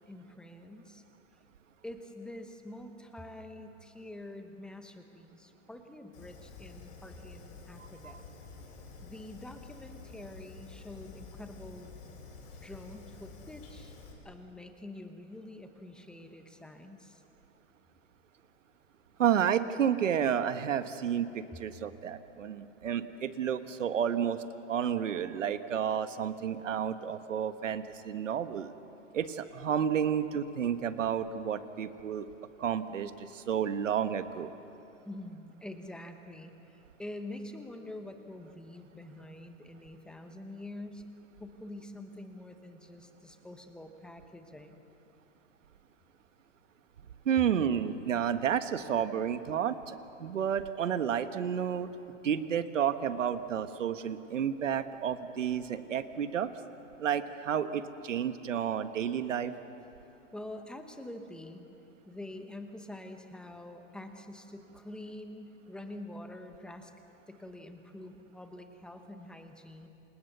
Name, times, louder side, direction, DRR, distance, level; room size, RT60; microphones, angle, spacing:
voice 1, 0.1-1.0 1.8-8.2 9.0-12.2 12.6-13.9 14.2-17.2 21.5-21.6 35.0-41.0 41.4-44.8 60.3-61.6 62.1-66.9 67.3-69.9, left 1 dB, ahead, 6 dB, 1.0 m, -46 dB
Fire, 6.1-14.1, left 4 dB, 45° left, 7.0 m, -50 dB
voice 2, 7.8-8.1 19.2-24.4 24.7-28.7 29.1-32.3 32.6-34.5 47.2-51.9 52.2-56.5 57.0-59.5, right 8 dB, 90° right, 10 dB, 1.6 m, -31 dB
29.0 x 27.0 x 6.9 m, 2.9 s
hypercardioid pair, 155°, 37 cm